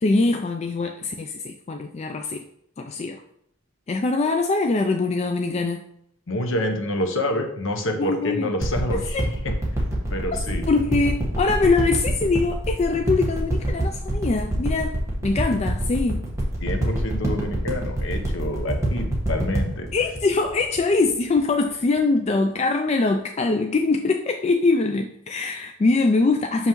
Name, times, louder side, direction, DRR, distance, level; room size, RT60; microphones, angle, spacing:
voice 1, 0.0-2.4 2.8-3.2 3.9-5.8 8.0-8.5 9.1-9.2 10.7-16.3 19.9-26.7, left 3 dB, 30° left, 4 dB, 0.3 m, -23 dB
voice 2, 6.3-9.2 9.4-9.5 10.1-10.6 16.6-19.9, left 1 dB, 60° left, 4 dB, 0.9 m, -27 dB
sound 1, 8.6-21.4 22.0-22.1, right 1 dB, 15° right, 1.3 m, -26 dB
6.1 x 5.5 x 3.0 m, 0.72 s
head